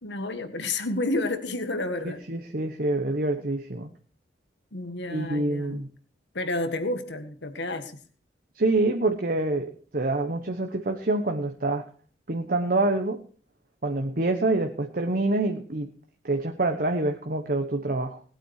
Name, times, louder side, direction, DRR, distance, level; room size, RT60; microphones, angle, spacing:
voice 1, 0.0-2.2 4.7-5.8 6.3-8.0, left 2 dB, 80° left, 9 dB, 1.7 m, -30 dB
voice 2, 2.3-3.9 5.1-5.9 8.5-11.8 12.3-13.2 13.8-15.9 16.2-18.2, right 2 dB, 55° right, 5 dB, 1.2 m, -26 dB
19.0 x 8.8 x 4.8 m, 0.42 s
head